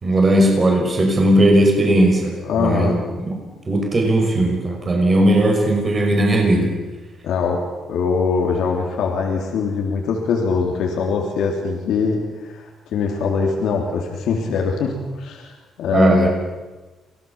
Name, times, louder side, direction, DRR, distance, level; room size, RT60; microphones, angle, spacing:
voice 1, 0.0-3.0 3.3-6.7 15.9-16.3, right 1 dB, 35° right, 1 dB, 5.8 m, -17 dB
voice 2, 2.4-3.0 7.2-7.6 7.9-16.3, left 5 dB, 80° left, 1 dB, 3.3 m, -22 dB
26.5 x 17.5 x 7.2 m, 1.2 s
cardioid pair, 90°, 0 cm